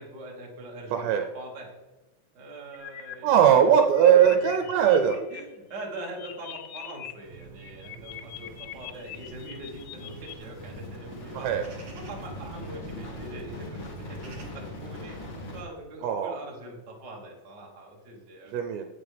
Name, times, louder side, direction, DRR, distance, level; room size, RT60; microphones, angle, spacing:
voice 1, 0.0-1.8 2.3-3.6 4.0-4.5 4.9-11.5 11.9-18.5, right 1 dB, 35° right, -1 dB, 2.0 m, -42 dB
voice 2, 0.9-1.2 3.2-5.1 11.3-11.6 16.0-16.4 18.5-18.9, right 8 dB, 85° right, 5 dB, 2.9 m, -20 dB
sound 1, 2.7-3.1 3.5-5.4 5.7-7.1 7.4-10.4, left 11 dB, 80° left, 1.9 m, -43 dB
sound 2, 7.2-14.4, right 5 dB, 65° right, 1.3 m, -48 dB
sound 3, 8.1-15.6, left 1 dB, 40° left, 1.6 m, -42 dB
17.0 x 6.3 x 3.5 m, 1.1 s
omnidirectional pair, 4.9 m